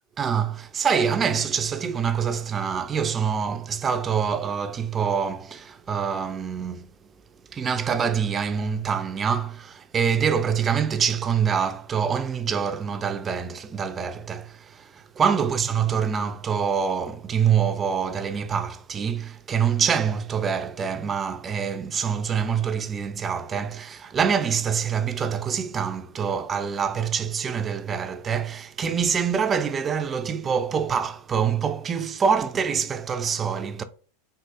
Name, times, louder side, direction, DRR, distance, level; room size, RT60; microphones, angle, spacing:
voice 1, 0.2-6.9 7.5-33.8, right 7 dB, 25° right, 0.3 m, -25 dB
3.7 x 2.6 x 2.4 m
figure-of-eight pair, 85°, 0 cm